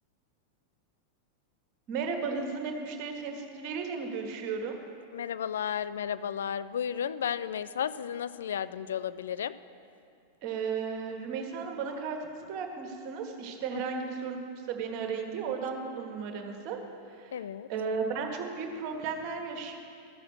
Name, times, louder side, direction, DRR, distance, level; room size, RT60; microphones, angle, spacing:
voice 1, 1.9-4.8 10.4-14.4 14.7-16.8 17.2-17.4 17.7-19.8, right 5 dB, 40° right, 3 dB, 1.4 m, -34 dB
voice 2, 5.1-9.5 13.7-13.8 17.3-17.7, left 8 dB, 65° left, 15 dB, 0.3 m, -33 dB
14.0 x 6.6 x 6.2 m, 2.4 s
figure-of-eight pair, 90°, 0 cm